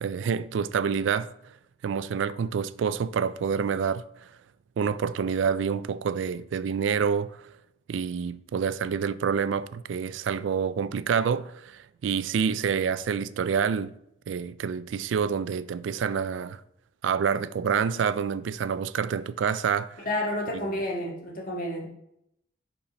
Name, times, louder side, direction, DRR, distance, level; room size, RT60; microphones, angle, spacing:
voice 1, 0.0-1.3 1.8-4.0 4.8-7.3 7.9-13.9 14.3-16.6 17.0-20.1 20.5-20.8, right 6 dB, 85° right, 0.3 m, -27 dB
voice 2, 20.1-21.9, left 1 dB, 50° left, 1.7 m, -30 dB
5.5 x 4.2 x 5.2 m
head